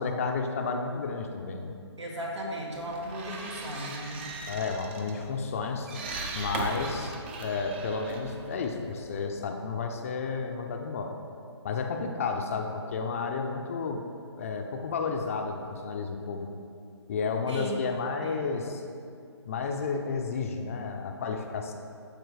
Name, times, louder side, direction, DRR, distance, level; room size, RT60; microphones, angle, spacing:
voice 1, 0.0-1.8 4.5-5.9 6.3-11.2 11.6-14.1 14.4-16.5 17.1-18.8 19.5-21.7, left 4 dB, 30° left, 4 dB, 0.5 m, -32 dB
voice 2, 2.0-4.2 17.5-17.8 18.2-18.4, equal, 80° right, -2 dB, 1.9 m, -36 dB
sound 1, 2.7-9.2, right 3 dB, 25° right, 0.5 m, -39 dB
13.0 x 4.4 x 3.2 m, 2.4 s
figure-of-eight pair, 150°, 15 cm